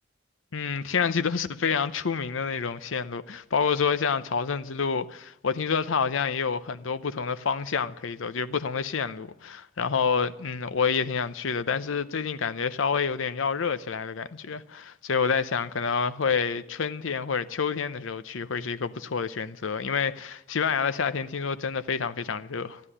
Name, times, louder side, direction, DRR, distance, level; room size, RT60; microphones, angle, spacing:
voice 1, 0.5-22.8, left 6 dB, 85° left, 0.7 m, -28 dB
13.5 x 11.0 x 9.8 m
head